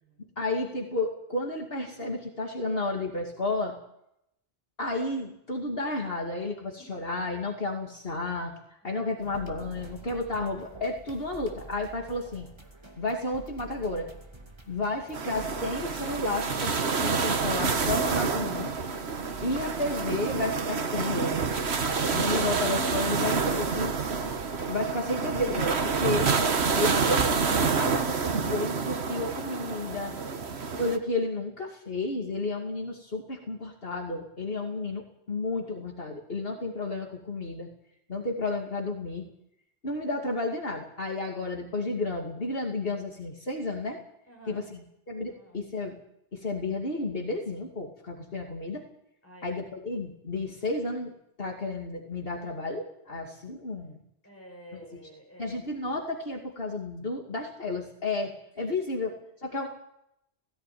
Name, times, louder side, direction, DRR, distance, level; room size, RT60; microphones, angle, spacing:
voice 1, 0.4-3.7 4.8-12.5 13.0-14.1 14.7-18.7 19.4-21.4 22.1-23.9 24.7-26.3 26.7-30.1 30.8-35.0 35.3-37.7 38.1-39.3 39.8-44.0 44.5-46.0 46.3-48.8 49.4-51.1 51.4-54.0 55.4-59.1 59.4-59.7, left 2 dB, 65° left, 1 dB, 2.8 m, -32 dB
sound 1, 9.2-27.5, right 2 dB, 25° right, 2.4 m, -47 dB
sound 2, 15.1-31.0, right 5 dB, 85° right, 1.6 m, -28 dB
voice 2, 44.3-44.7 45.3-45.6 49.2-49.6 54.2-55.9 58.6-58.8 59.0-59.2 59.5-59.6, equal, 15° left, 2 dB, 5.8 m, -51 dB
18.0 x 16.0 x 9.4 m, 0.77 s
omnidirectional pair, 1.1 m